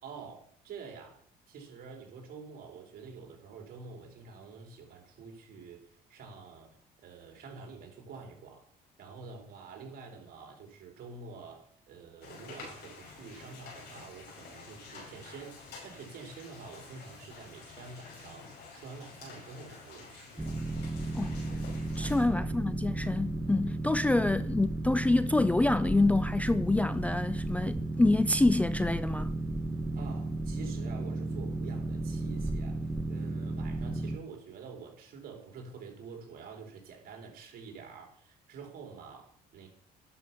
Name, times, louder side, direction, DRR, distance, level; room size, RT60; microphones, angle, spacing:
voice 1, 0.0-1.2 1.5-6.8 7.0-8.6 9.0-20.5 22.4-22.7 24.4-24.5 30.0-32.8 33.1-39.7, right 5 dB, 60° right, 3.7 m, -48 dB
sound 1, 12.2-22.2, left 4 dB, 80° left, 5.3 m, -49 dB
Boat Water vehicle, 20.4-34.2, right 2 dB, 10° right, 0.9 m, -34 dB
voice 2, 22.0-29.3, left 2 dB, 10° left, 0.4 m, -27 dB
11.5 x 6.7 x 5.9 m
cardioid pair, 110°, 17 cm